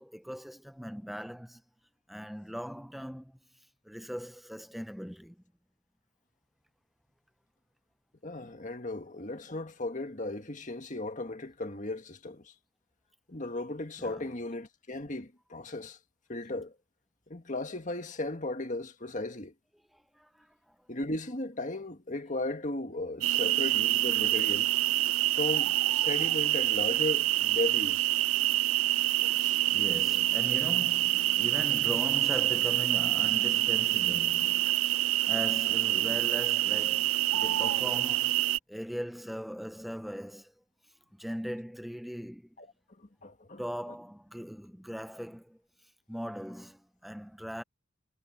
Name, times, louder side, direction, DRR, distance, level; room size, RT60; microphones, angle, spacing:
voice 1, 0.0-1.6 2.1-3.3 3.9-5.4 14.0-14.3 20.2-20.5 29.2-29.4 29.7-38.3 38.7-40.5 41.1-42.5 43.6-45.6 46.1-47.6, equal, ahead, 0.5 m, -39 dB
voice 2, 8.2-12.5 13.3-16.0 16.3-16.7 17.3-19.5 20.9-24.8 25.3-28.1 29.4-29.6 42.6-42.7 43.2-43.6, left 2 dB, 35° left, 1.7 m, -36 dB
sound 1, 23.2-38.6, right 16 dB, 75° right, 0.3 m, -27 dB
head